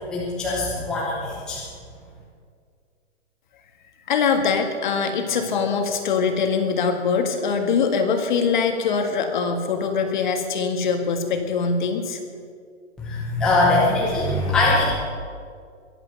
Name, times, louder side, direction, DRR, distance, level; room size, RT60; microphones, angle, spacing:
voice 1, 0.0-1.6 13.0-14.9, left 2 dB, ahead, -6 dB, 0.8 m, -22 dB
voice 2, 4.1-12.2, left 5 dB, 40° left, 6 dB, 1.8 m, -23 dB
22.5 x 8.9 x 6.6 m, 2.2 s
hypercardioid pair, 175°, 37 cm